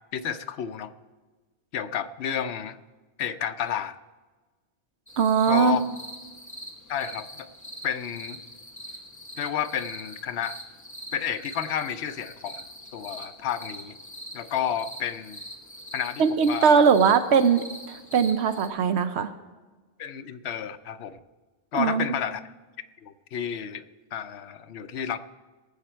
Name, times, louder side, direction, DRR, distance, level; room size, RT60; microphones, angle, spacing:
voice 1, 0.1-0.9 1.7-2.8 3.2-4.0 5.5-5.8 6.9-7.5 7.8-8.4 9.4-10.6 11.1-12.6 12.9-14.0 14.3-15.4 15.9-16.8 20.0-21.2 21.7-22.5 23.0-23.8 24.1-25.2, left 9 dB, 80° left, 10 dB, 0.9 m, -31 dB
sound 1, 5.1-18.7, equal, 15° left, 1.3 m, -43 dB
voice 2, 5.2-5.8 16.2-19.3 21.7-22.0, right 6 dB, 90° right, 10 dB, 0.9 m, -21 dB
19.0 x 7.4 x 4.4 m, 1.3 s
omnidirectional pair, 1.1 m